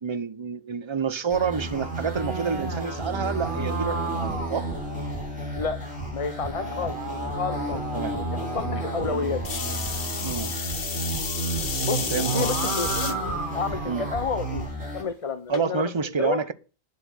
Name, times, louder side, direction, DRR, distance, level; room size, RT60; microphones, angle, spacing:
voice 1, 0.0-4.7 7.9-8.2 8.6-8.8 9.1-9.3 10.2-10.5 12.1-12.5 13.9-14.1 15.5-16.5, right 5 dB, 30° right, 0.8 m, -28 dB
sound 1, 1.3-15.0, right 2 dB, 5° right, 6.6 m, -32 dB
sound 2, 1.5-5.4 6.3-10.6 12.0-14.5, right 2 dB, 50° right, 2.2 m, -34 dB
voice 2, 6.1-7.0 7.3-7.8 8.3-9.4 11.8-13.2 13.5-16.4, left 5 dB, 35° left, 0.9 m, -30 dB
sound 3, 9.4-13.1 13.8-14.3 15.5-15.6, left 6 dB, 60° left, 1.3 m, -31 dB
10.5 x 7.5 x 6.4 m
omnidirectional pair, 1.1 m